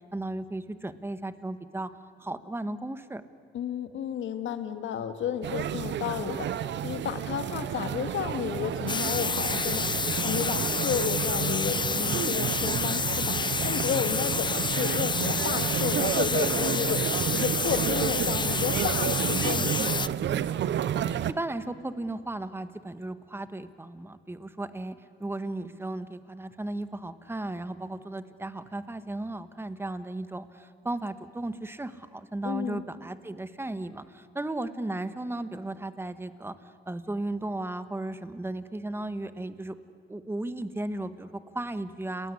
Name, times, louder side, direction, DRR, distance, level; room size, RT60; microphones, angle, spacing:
voice 1, 0.1-1.9 2.2-3.2 19.4-19.9 21.0-24.9 25.2-36.5 36.9-39.7 40.1-42.3, right 2 dB, 10° right, 11 dB, 1.4 m, -35 dB
voice 2, 3.5-20.1 32.4-32.8, left 8 dB, 75° left, 8 dB, 2.0 m, -32 dB
sound 1, 5.4-21.3, right 10 dB, 65° right, 0.9 m, -31 dB
sound 2, 8.9-20.1, left 4 dB, 25° left, 0.6 m, -29 dB
29.5 x 20.0 x 9.9 m, 2.2 s
cardioid pair, 90°, 20 cm